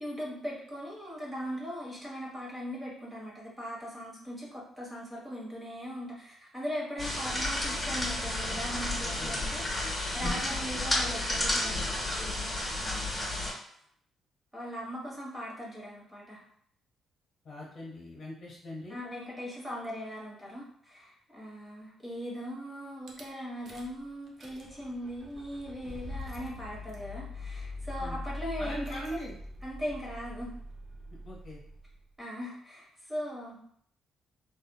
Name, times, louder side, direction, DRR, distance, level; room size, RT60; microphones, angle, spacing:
voice 1, 0.0-12.5 12.8-13.3 14.5-16.4 18.9-29.2 29.6-30.5 32.2-33.6, equal, 10° right, -5 dB, 1.2 m, -39 dB
sound 1, 7.0-13.5, left 1 dB, 10° left, 1.4 m, -31 dB
voice 2, 17.4-19.0 28.0-28.2 28.6-29.4 31.2-31.6, left 1 dB, 55° left, -3 dB, 1.2 m, -41 dB
Rattle / Car / Engine starting, 23.1-23.2 23.7-24.0 24.3-32.0, left 2 dB, 45° right, 0.6 m, -42 dB
3.6 x 2.4 x 2.2 m, 0.63 s
cardioid pair, 90°, 0 cm